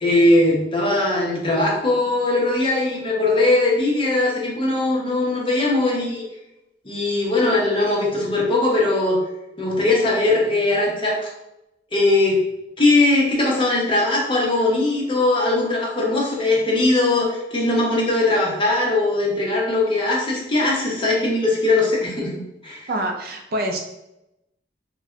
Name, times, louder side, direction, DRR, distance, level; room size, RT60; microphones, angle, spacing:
voice 1, 0.0-6.2 6.8-9.2 9.6-11.3 11.9-12.4 12.8-22.3 22.6-22.8, left 2 dB, 30° left, -3 dB, 0.8 m, -20 dB
voice 2, 22.9-23.8, right 1 dB, 55° right, 2 dB, 0.5 m, -25 dB
4.1 x 2.1 x 2.4 m, 0.88 s
head